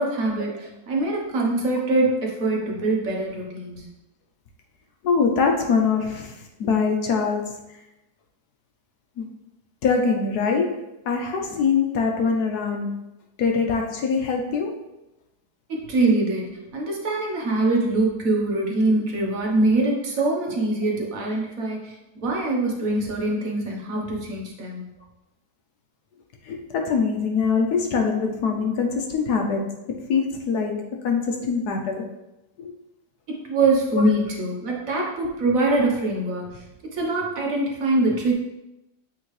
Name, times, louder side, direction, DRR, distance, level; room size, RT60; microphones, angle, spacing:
voice 1, 0.0-3.8 15.7-16.5 16.7-24.8 33.3-38.3, right 2 dB, 55° right, -1 dB, 1.4 m, -23 dB
voice 2, 5.0-7.6 9.2-9.3 9.8-13.0 13.4-14.8 26.4-32.1 32.6-32.7 33.9-34.0 35.0-35.1, left 5 dB, 70° left, 3 dB, 1.2 m, -23 dB
8.4 x 3.6 x 3.2 m, 0.93 s
omnidirectional pair, 1.8 m